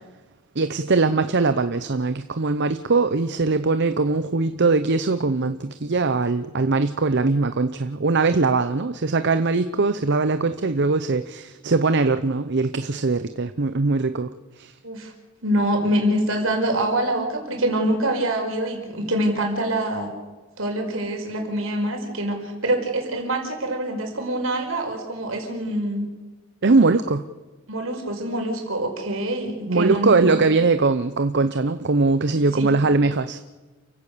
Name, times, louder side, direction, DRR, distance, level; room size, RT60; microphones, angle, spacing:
voice 1, 0.6-14.3 14.6-14.7 26.6-27.2 29.7-33.4, right 3 dB, 55° right, 11 dB, 0.8 m, -21 dB
voice 2, 15.4-20.1 20.6-26.1 27.7-30.2 32.5-32.7, right 1 dB, 75° right, 3 dB, 5.1 m, -25 dB
29.0 x 16.0 x 6.8 m, 1.3 s
head